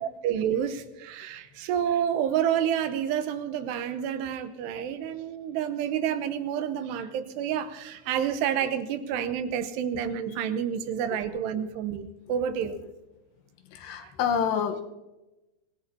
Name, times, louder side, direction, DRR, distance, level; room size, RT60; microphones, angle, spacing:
voice 1, 0.0-12.8 14.0-14.1, right 9 dB, 85° right, 3.0 m, -29 dB
voice 2, 13.7-14.8, left 7 dB, 85° left, 3.2 m, -27 dB
25.0 x 17.0 x 2.8 m
omnidirectional pair, 4.8 m